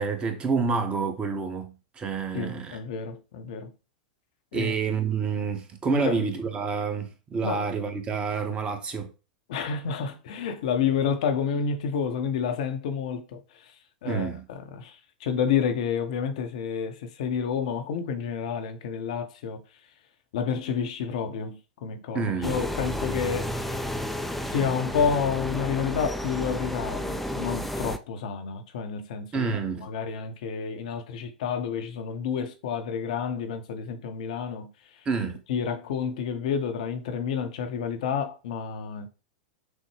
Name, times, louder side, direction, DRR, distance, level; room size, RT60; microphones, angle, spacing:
voice 1, 0.0-2.8 4.5-9.1 14.0-14.4 22.1-22.7 29.3-29.9 35.0-35.4, right 5 dB, 25° right, 0.9 m, -28 dB
voice 2, 2.3-3.7 4.5-4.7 5.9-6.2 7.4-7.7 9.5-13.7 14.0-19.6 20.3-23.7 24.5-29.5 29.8-34.7 35.5-39.1, left 6 dB, 60° left, 0.7 m, -29 dB
sound 1, 22.4-28.0, left 1 dB, 5° left, 0.3 m, -32 dB
6.2 x 2.1 x 3.2 m
figure-of-eight pair, 95°, 4 cm